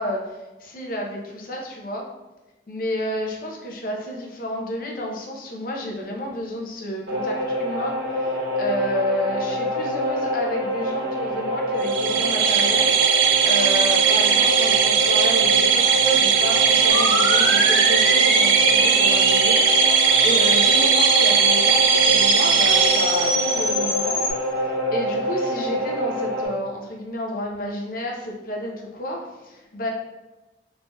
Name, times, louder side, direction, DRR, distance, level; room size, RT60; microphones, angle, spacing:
voice 1, 0.0-2.1 2.7-24.4 24.9-29.9, left 1 dB, 50° left, 0 dB, 0.5 m, -31 dB
sound 1, 7.1-26.5, equal, 65° right, 0.8 m, -26 dB
sound 2, 11.8-23.7, right 8 dB, 85° right, 0.3 m, -19 dB
sound 3, 16.9-24.3, equal, 20° left, 0.9 m, -24 dB
3.2 x 2.6 x 2.2 m, 1.1 s
head